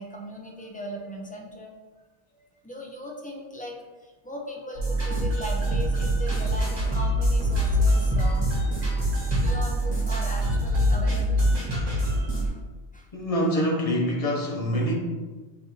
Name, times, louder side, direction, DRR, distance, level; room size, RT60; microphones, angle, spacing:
voice 1, 0.0-1.7 2.3-8.5 9.4-11.5 11.9-12.1 12.4-12.6 12.9-13.1, equal, 15° left, -1 dB, 0.3 m, -38 dB
sound 1, 4.7-12.5, equal, 40° right, 1.4 m, -24 dB
voice 2, 13.1-14.9, equal, 35° left, -2 dB, 0.9 m, -25 dB
6.5 x 2.6 x 3.1 m, 1.3 s
omnidirectional pair, 1.1 m